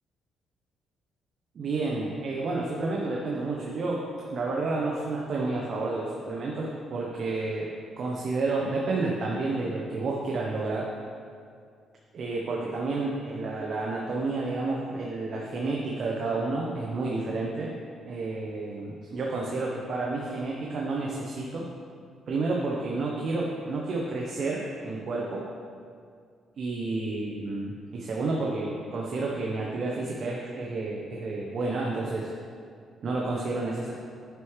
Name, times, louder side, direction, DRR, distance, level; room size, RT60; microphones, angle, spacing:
voice 1, 1.5-4.0 4.3-7.7 8.0-10.9 12.1-17.7 18.1-21.6 22.3-25.4 26.6-32.3 33.0-33.9, right 3 dB, 55° right, -2 dB, 0.8 m, -30 dB
9.2 x 4.7 x 3.2 m, 2.2 s
cardioid pair, 90°, 0 cm